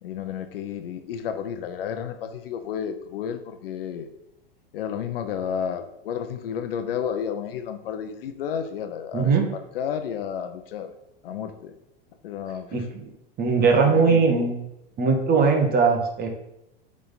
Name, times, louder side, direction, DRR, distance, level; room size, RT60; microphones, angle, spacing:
voice 1, 0.0-4.1 4.7-10.9 11.2-11.7 12.2-12.9 13.6-14.4, left 8 dB, 75° left, 8 dB, 0.8 m, -32 dB
voice 2, 9.1-9.5 12.7-13.1 13.4-14.6 15.0-16.3, right 5 dB, 30° right, 3 dB, 1.4 m, -20 dB
8.4 x 3.7 x 4.1 m, 0.86 s
hypercardioid pair, 105°, 29 cm